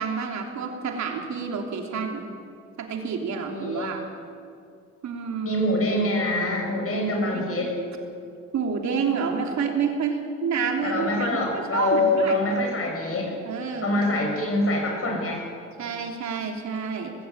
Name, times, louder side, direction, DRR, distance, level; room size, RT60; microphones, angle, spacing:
voice 1, 0.0-2.3 2.8-4.0 5.0-5.6 7.3-7.4 8.5-12.4 13.4-14.0 15.8-17.1, right 6 dB, 65° right, 2 dB, 3.0 m, -29 dB
voice 2, 3.5-4.0 5.4-7.7 10.8-13.4 13.8-15.4, left 1 dB, 50° left, 1 dB, 7.3 m, -25 dB
19.5 x 16.5 x 8.4 m, 2.4 s
cardioid pair, 90°, 30 cm